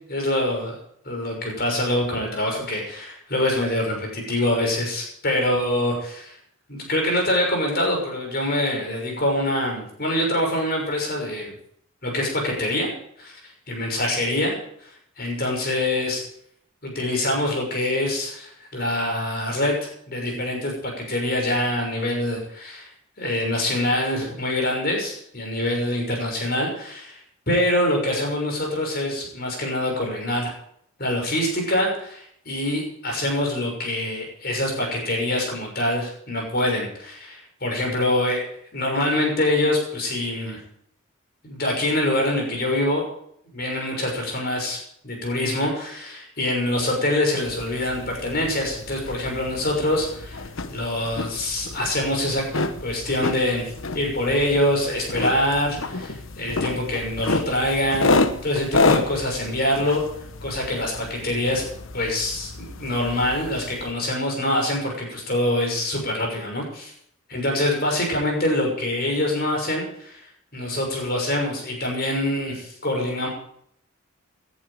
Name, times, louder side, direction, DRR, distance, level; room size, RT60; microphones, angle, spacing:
voice 1, 0.1-0.8 1.0-6.3 6.7-11.5 12.0-13.4 13.7-14.6 14.8-14.9 15.2-16.2 16.8-22.9 23.2-27.2 27.5-30.5 31.0-38.4 38.7-40.6 41.4-43.0 43.5-44.8 45.0-52.4 52.8-58.1 58.4-60.0 60.4-61.6 61.9-66.9 67.3-70.3 70.5-73.3, left 1 dB, 45° left, 1 dB, 6.4 m, -25 dB
sound 1, 47.4-63.9, left 3 dB, 65° left, 1.0 m, -29 dB
19.0 x 11.0 x 5.1 m, 0.68 s
head